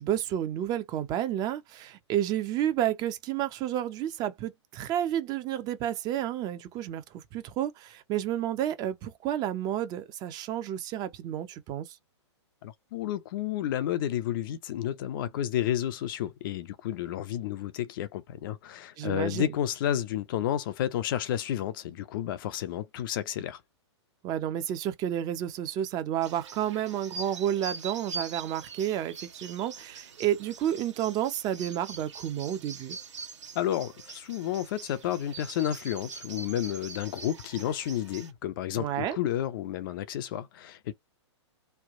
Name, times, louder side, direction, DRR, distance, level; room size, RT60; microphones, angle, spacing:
voice 1, 0.0-11.9 19.0-19.5 24.2-33.0 38.7-39.2, right 11 dB, 25° right, 0.6 m, -31 dB
voice 2, 12.6-23.6 33.5-40.9, left 11 dB, 45° left, 0.6 m, -31 dB
sound 1, 26.2-38.3, right 4 dB, 85° right, 1.2 m, -43 dB
3.2 x 2.3 x 3.6 m
hypercardioid pair, 135°, 15 cm